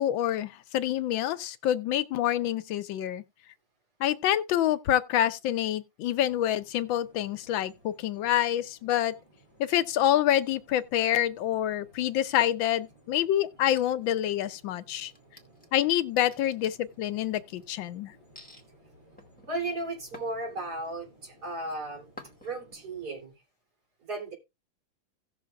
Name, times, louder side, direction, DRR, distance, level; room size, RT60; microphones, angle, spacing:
voice 1, 0.0-3.2 4.0-9.1 9.6-15.1 15.7-18.1, left 12 dB, 85° left, 1.4 m, -27 dB
sound 1, 6.3-23.2, right 1 dB, 30° right, 5.4 m, -59 dB
sound 2, 13.6-14.6 15.0-17.7 18.4-18.6 19.2-21.0 21.4-21.8 22.2-22.8, left 1 dB, 5° left, 1.6 m, -51 dB
voice 2, 19.5-22.1 22.4-23.4 24.0-24.3, right 2 dB, 55° right, 3.6 m, -35 dB
16.5 x 6.3 x 2.4 m
omnidirectional pair, 2.1 m